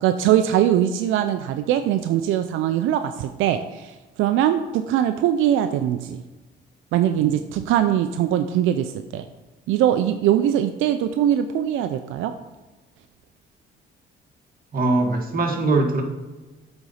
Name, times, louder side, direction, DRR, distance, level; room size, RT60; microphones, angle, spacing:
voice 1, 0.0-6.2 6.9-9.2 9.7-12.3, right 11 dB, 90° right, 8 dB, 0.4 m, -21 dB
voice 2, 14.7-16.0, right 2 dB, 45° right, 2 dB, 1.7 m, -21 dB
8.0 x 4.1 x 5.6 m, 1.2 s
cardioid pair, 90°, 20 cm